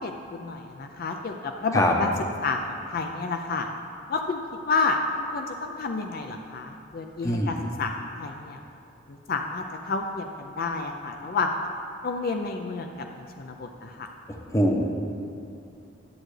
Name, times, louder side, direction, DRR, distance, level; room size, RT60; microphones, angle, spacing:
voice 1, 0.0-2.1 2.4-3.7 4.1-8.6 9.1-11.5 12.0-12.9 13.2-14.1, left 4 dB, 50° left, 4 dB, 0.4 m, -30 dB
voice 2, 7.2-7.6 13.0-13.1 14.3-14.8, equal, 15° left, 1 dB, 0.7 m, -23 dB
11.0 x 7.6 x 3.2 m, 2.5 s
head